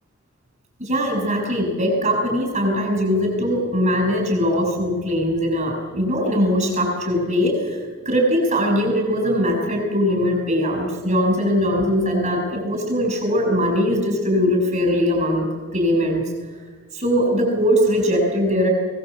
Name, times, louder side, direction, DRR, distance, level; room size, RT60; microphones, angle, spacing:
voice 1, 0.8-7.8 8.1-15.5 15.7-16.3 16.9-18.7, equal, 35° right, 3 dB, 7.1 m, -21 dB
24.0 x 19.5 x 8.2 m, 1.4 s
head